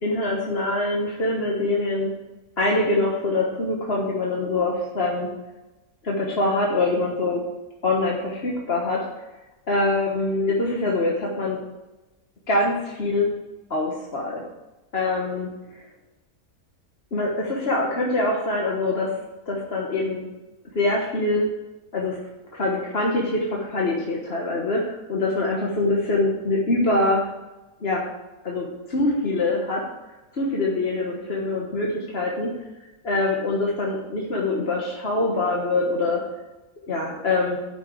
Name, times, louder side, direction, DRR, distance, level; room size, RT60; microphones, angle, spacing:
voice 1, 0.0-2.1 2.6-5.3 6.0-7.4 7.8-9.0 9.7-11.6 12.5-13.3 13.7-14.4 14.9-15.5 17.1-19.1 19.5-20.2 20.7-21.4 21.9-22.2 22.5-27.3 27.8-28.0 28.4-29.8 30.3-32.5 33.0-36.2 36.9-37.6, left 2 dB, 45° left, -2 dB, 1.5 m, -24 dB
8.4 x 6.1 x 7.6 m, 1.1 s
omnidirectional pair, 1.5 m